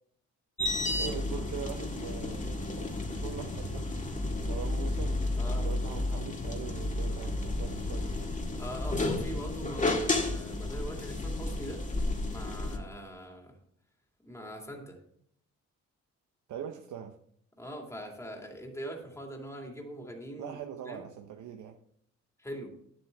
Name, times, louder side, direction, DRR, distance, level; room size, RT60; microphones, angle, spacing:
sound 1, 0.6-12.8, left 2 dB, 25° left, 1.7 m, -32 dB
voice 1, 0.8-3.9 4.5-5.2 5.6-8.3 16.5-17.2 20.4-21.8, right 8 dB, 75° right, 5 dB, 0.8 m, -42 dB
voice 2, 5.4-5.7 8.6-11.8 12.3-13.6 14.2-15.0 17.6-20.6 20.8-21.0 22.4-22.8, equal, 10° left, 1 dB, 2.3 m, -42 dB
9.8 x 7.7 x 3.4 m, 0.66 s
cardioid pair, 90°, 30 cm